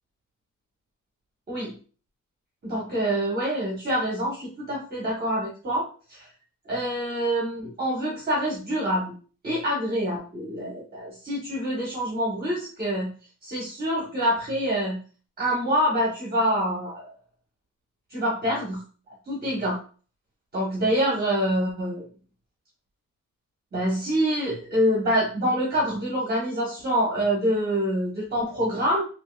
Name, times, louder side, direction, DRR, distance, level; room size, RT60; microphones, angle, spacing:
voice 1, 2.6-6.3 6.7-9.1 9.4-13.1 13.4-15.0 15.4-17.1 18.1-18.8 19.3-19.8 20.5-22.0 23.7-29.0, equal, 30° right, -5 dB, 0.9 m, -26 dB
3.4 x 2.5 x 2.2 m, 0.39 s
wide cardioid pair, 150°, 32 cm